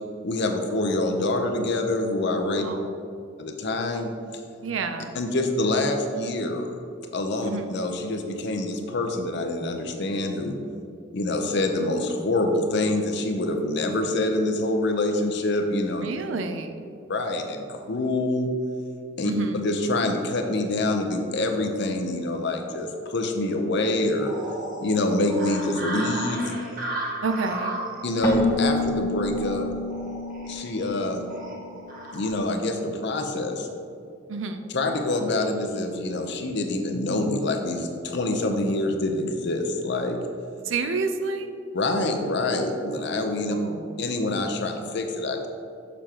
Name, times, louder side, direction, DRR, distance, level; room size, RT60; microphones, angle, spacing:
voice 1, 0.2-2.6 3.4-4.1 5.1-6.7 7.1-10.6 11.1-16.1 17.1-18.5 19.2-24.3 24.8-26.5 28.0-29.7 30.5-31.2 32.1-33.7 34.7-40.2 41.7-43.6 44.0-45.5, left 2 dB, 60° left, 4 dB, 0.7 m, -26 dB
voice 2, 2.6-2.9 4.6-5.1 7.4-7.7 16.0-16.9 19.2-19.7 27.2-27.8 34.3-34.6 40.7-41.5 43.5-43.9, right 3 dB, 80° right, 7 dB, 0.5 m, -29 dB
sound 1, 24.2-32.3, right 1 dB, 45° right, 1.3 m, -35 dB
Keyboard (musical), 28.2-31.9, left 2 dB, 15° left, 0.6 m, -29 dB
6.9 x 6.3 x 2.9 m, 2.5 s
head